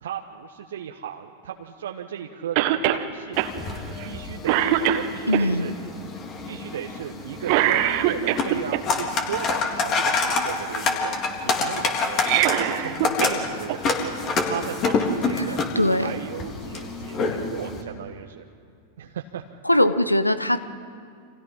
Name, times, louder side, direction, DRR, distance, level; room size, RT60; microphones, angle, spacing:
voice 1, 0.0-3.4 4.0-5.7 6.5-11.1 11.4-12.2 12.6-14.1 14.4-15.6 16.0-18.4 19.0-19.4, right 9 dB, 60° right, 2 dB, 1.4 m, -35 dB
Cough, 2.6-3.0 3.4-3.5 4.0-4.2 4.5-5.4 7.4-8.8 12.1-13.4 13.7-13.8 14.9-15.0, right 12 dB, 45° right, 1.6 m, -22 dB
sound 1, 3.3-17.8, left 4 dB, 30° left, 3.5 m, -27 dB
voice 2, 5.3-5.7 15.4-15.5 15.7-16.1 19.6-20.6, left 1 dB, 85° left, 13 dB, 1.1 m, -21 dB
29.5 x 27.5 x 5.7 m, 2.3 s
figure-of-eight pair, 90°, 0 cm